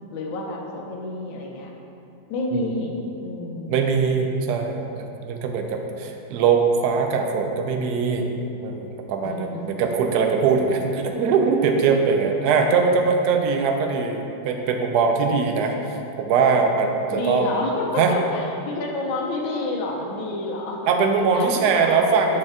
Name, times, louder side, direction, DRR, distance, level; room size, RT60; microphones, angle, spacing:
voice 1, 0.1-1.7 2.3-3.8 9.2-9.6 17.1-20.8 21.1-22.4, left 2 dB, 85° left, -1 dB, 1.5 m, -29 dB
voice 2, 3.7-8.3 8.6-15.8 16.2-17.5 18.0-18.1 20.9-22.4, right 5 dB, 70° right, 3 dB, 1.0 m, -21 dB
6.3 x 4.3 x 3.6 m, 2.9 s
omnidirectional pair, 2.1 m